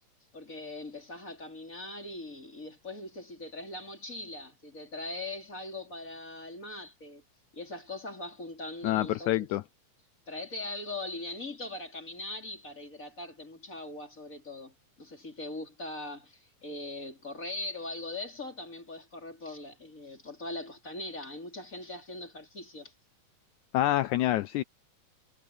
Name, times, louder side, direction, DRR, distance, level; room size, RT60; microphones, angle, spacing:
voice 1, 0.3-7.2 7.5-9.5 10.3-22.9, left 2 dB, 25° left, 4.2 m, -41 dB
voice 2, 8.8-9.6 23.7-24.6, left 14 dB, 80° left, 1.8 m, -27 dB
omnidirectional pair, 3.7 m